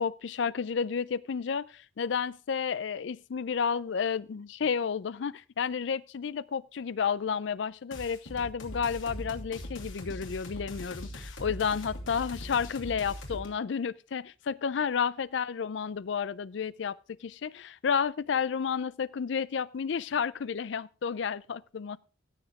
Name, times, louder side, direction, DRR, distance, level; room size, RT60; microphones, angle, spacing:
voice 1, 0.0-22.0, left 6 dB, 65° left, 0.4 m, -31 dB
sound 1, 7.9-13.5, left 1 dB, 85° left, 2.8 m, -41 dB
16.0 x 7.1 x 3.6 m
head